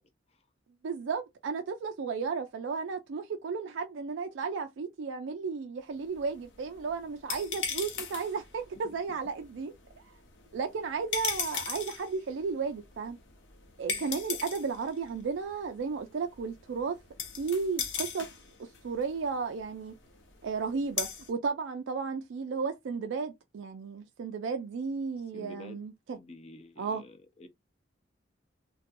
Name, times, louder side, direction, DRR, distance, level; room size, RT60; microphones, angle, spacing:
voice 1, 0.8-10.0 10.5-13.2 13.8-17.0 17.4-18.3 18.6-19.9 20.4-26.2 26.8-27.0, right 5 dB, 80° right, 0.4 m, -34 dB
sound 1, 6.0-21.3, left 6 dB, 80° left, 0.8 m, -40 dB
voice 2, 25.3-25.8 26.2-27.5, left 2 dB, 35° left, 0.5 m, -49 dB
2.5 x 2.2 x 2.5 m
head